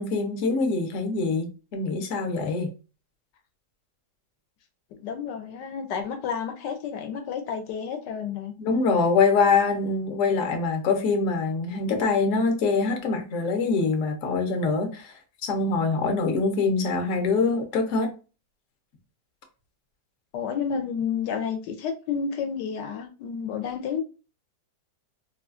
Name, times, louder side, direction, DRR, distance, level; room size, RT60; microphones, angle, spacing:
voice 1, 0.0-2.7 8.6-18.1, left 4 dB, 60° left, 0.9 m, -24 dB
voice 2, 4.9-8.5 20.3-24.0, left 7 dB, 80° left, 1.2 m, -30 dB
3.9 x 2.3 x 2.4 m
omnidirectional pair, 1.8 m